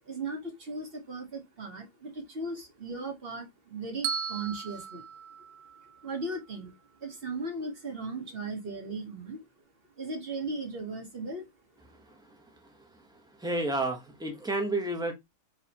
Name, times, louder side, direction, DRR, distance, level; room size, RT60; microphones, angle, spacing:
voice 1, 0.0-5.0 5.8-6.7 7.0-9.4 10.0-11.5, right 3 dB, 40° right, 1.2 m, -37 dB
Bell, 4.0-6.2, right 7 dB, 75° right, 0.7 m, -37 dB
voice 2, 13.4-15.1, right 2 dB, 5° right, 0.6 m, -30 dB
4.8 x 3.1 x 2.9 m
omnidirectional pair, 1.8 m